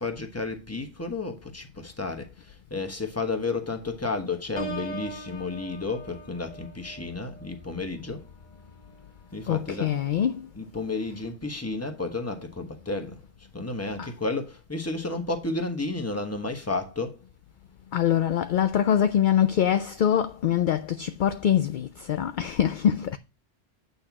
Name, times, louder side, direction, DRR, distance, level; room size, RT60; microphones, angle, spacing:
voice 1, 0.0-8.3 9.3-9.9 10.5-13.2 13.5-17.2, left 3 dB, 15° left, 1.2 m, -32 dB
Piano, 4.6-10.2 10.7-11.0, right 1 dB, 35° left, 1.5 m, -42 dB
voice 2, 9.5-10.5 14.0-14.1 17.9-23.2, left 9 dB, 55° left, 0.6 m, -24 dB
8.7 x 4.1 x 5.9 m
omnidirectional pair, 1.2 m